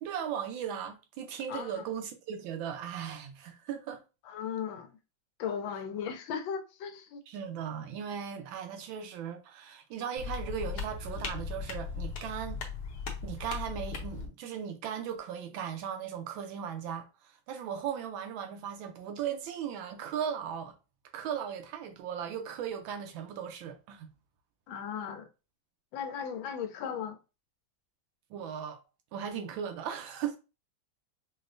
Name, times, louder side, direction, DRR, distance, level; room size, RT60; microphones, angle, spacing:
voice 1, 0.0-4.0 7.3-12.6 13.2-20.8 21.1-24.1 28.3-28.8 29.1-30.4, right 8 dB, 85° right, 1.4 m, -37 dB
voice 2, 1.5-1.8 4.2-5.0 5.4-7.2 24.7-25.3 25.9-27.2, left 7 dB, 85° left, 1.4 m, -37 dB
sound 1, 10.2-14.3, left 4 dB, 65° left, 1.2 m, -38 dB
4.8 x 2.1 x 2.6 m
omnidirectional pair, 2.1 m